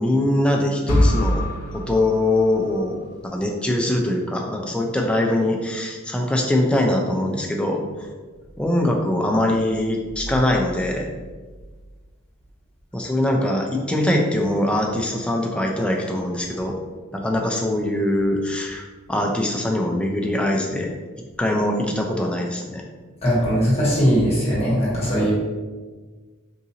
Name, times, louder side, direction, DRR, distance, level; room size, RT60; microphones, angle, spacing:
voice 1, 0.0-1.4 1.7-3.0 3.2-8.1 8.6-11.1 12.9-16.7 17.1-20.9 21.4-22.8 25.2-25.3, left 1 dB, 5° left, 0 dB, 0.3 m, -22 dB
sound 1, 0.9-2.9, left 1 dB, 80° left, 0.6 m, -23 dB
voice 2, 23.2-25.3, equal, 30° left, -7 dB, 1.1 m, -19 dB
3.8 x 2.5 x 2.8 m, 1.4 s
head